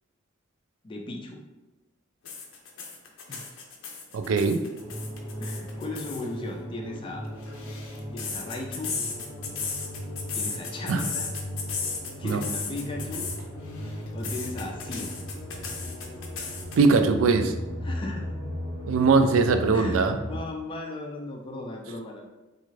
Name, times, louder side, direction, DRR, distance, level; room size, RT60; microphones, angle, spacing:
voice 1, 0.8-1.4 3.3-3.5 5.4-7.3 8.1-8.9 10.3-11.3 12.2-13.3 13.8-15.1 17.8-18.5 19.7-22.3, left 2 dB, 25° left, 1 dB, 0.3 m, -37 dB
sound 1, 2.3-6.3 7.3-13.4 13.7-17.0, left 5 dB, 75° left, 0.6 m, -35 dB
voice 2, 4.1-4.6 10.9-11.0 12.2-12.4 16.8-17.5 18.9-20.2, right 4 dB, 75° right, 7 dB, 0.3 m, -21 dB
sound 2, 4.8-20.4, equal, 15° right, 0.6 m, -37 dB
3.5 x 2.4 x 3.1 m, 1.1 s
head